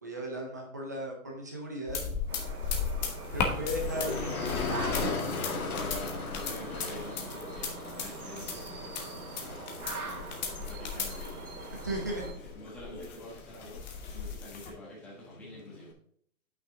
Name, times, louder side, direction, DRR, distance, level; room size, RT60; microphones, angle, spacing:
voice 1, 0.0-2.2 3.3-4.5 5.0-5.2 11.9-12.2, right 1 dB, 15° right, 0 dB, 0.6 m, -36 dB
sound 1, 1.9-14.7, left 5 dB, 30° left, 1.2 m, -37 dB
sound 2, 2.3-12.3, right 3 dB, 85° right, 2.2 m, -43 dB
Motor vehicle (road), 3.2-15.9, left 4 dB, 80° left, 2.2 m, -39 dB
voice 2, 5.6-11.3 12.0-15.9, left 1 dB, 5° left, -6 dB, 1.2 m, -48 dB
8.9 x 5.9 x 3.7 m, 0.63 s
hypercardioid pair, 170°, 43 cm